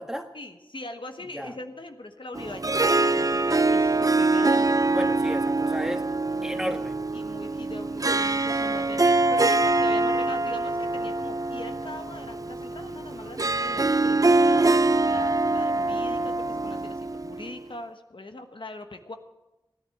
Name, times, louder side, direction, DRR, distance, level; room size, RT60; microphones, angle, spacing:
voice 1, 0.3-5.0 6.3-6.7 7.1-14.6 15.0-19.2, left 2 dB, 70° left, 6 dB, 1.2 m, -41 dB
Harp, 2.3-17.6, right 2 dB, 40° right, 0.5 m, -24 dB
voice 2, 4.9-6.1 6.4-7.0, equal, 5° right, 5 dB, 1.5 m, -32 dB
16.5 x 11.0 x 7.8 m, 1.0 s
wide cardioid pair, 50°, 9 cm